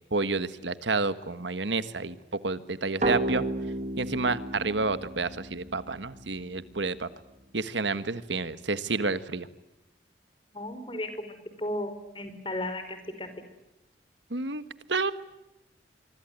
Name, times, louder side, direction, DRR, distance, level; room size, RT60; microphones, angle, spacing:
voice 1, 0.0-2.2 2.4-3.4 4.0-7.1 7.5-9.5 14.3-14.6 14.9-15.1, right 3 dB, 80° right, 13 dB, 1.5 m, -29 dB
sound 1, 3.0-6.5, right 2 dB, 40° right, 1.6 m, -33 dB
voice 2, 10.5-13.3, left 1 dB, 30° left, 9 dB, 4.8 m, -35 dB
25.5 x 24.0 x 9.5 m, 0.95 s
head